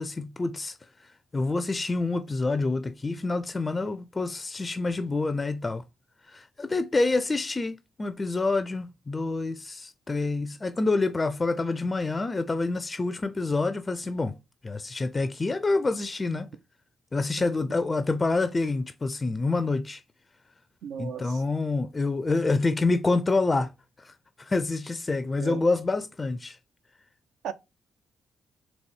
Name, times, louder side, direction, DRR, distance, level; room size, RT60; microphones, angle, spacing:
voice 1, 0.0-5.8 6.3-14.4 14.6-16.5 17.1-20.0 21.0-23.7 24.0-26.6, left 3 dB, 30° left, 0.4 m, -27 dB
voice 2, 20.8-21.4 25.4-25.6 27.4-27.5, right 8 dB, 65° right, 0.4 m, -35 dB
4.1 x 3.2 x 3.0 m
figure-of-eight pair, 40°, 0 cm